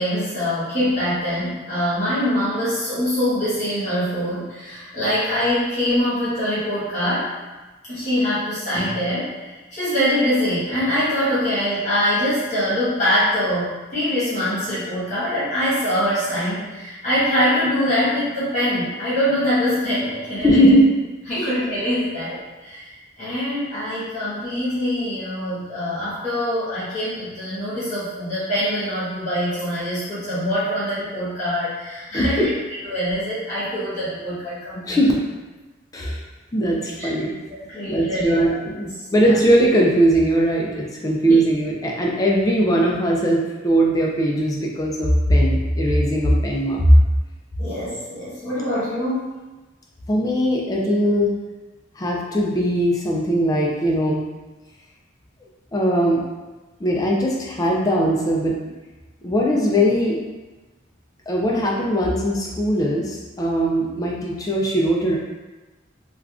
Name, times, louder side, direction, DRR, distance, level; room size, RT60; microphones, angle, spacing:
voice 1, 0.0-7.3 7.9-20.7 21.3-22.9 23.2-32.5 32.8-35.0 37.0-37.1 37.5-38.5 39.2-39.4 41.2-41.4 47.6-49.3, equal, 40° left, -12 dB, 1.3 m, -24 dB
voice 2, 20.4-20.9 21.4-21.5 32.1-32.5 34.9-35.1 35.9-36.2 36.5-37.3 37.9-46.9 50.1-51.3 52.0-54.2 55.7-56.2 56.8-58.5 59.2-60.2 61.3-65.2, equal, 20° left, -2 dB, 0.3 m, -20 dB
3.4 x 2.3 x 2.3 m, 1.2 s
head